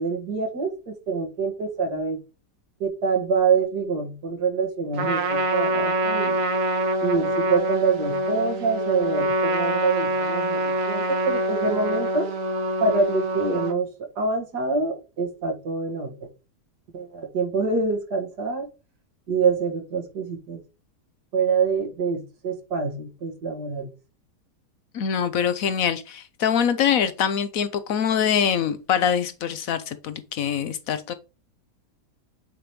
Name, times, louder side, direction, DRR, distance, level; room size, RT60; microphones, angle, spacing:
voice 1, 0.0-2.2 2.8-6.4 7.0-12.3 12.8-13.9 14.2-16.3 16.9-18.7 19.3-20.6 21.3-23.9, right 4 dB, 80° right, 2.1 m, -26 dB
Trumpet, 4.9-13.7, right 1 dB, 55° right, 1.4 m, -25 dB
voice 2, 24.9-31.1, left 8 dB, 65° left, 1.0 m, -24 dB
8.6 x 3.0 x 5.0 m
omnidirectional pair, 1.7 m